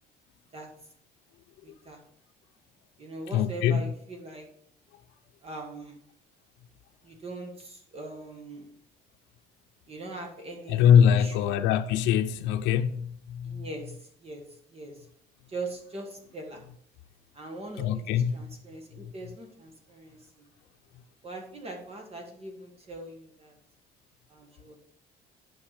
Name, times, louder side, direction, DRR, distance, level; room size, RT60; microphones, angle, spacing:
voice 1, 1.6-2.0 3.0-4.5 5.4-6.0 7.0-8.7 9.9-11.5 13.4-14.4 14.7-15.0 15.5-16.6 17.3-18.0 18.3-20.2 21.2-23.5 24.3-24.8, right 2 dB, 35° right, 1.6 m, -41 dB
voice 2, 3.3-3.9 10.7-13.7 17.8-18.4, left 8 dB, 90° left, 0.6 m, -23 dB
8.8 x 5.9 x 5.0 m
cardioid pair, 130°, 18 cm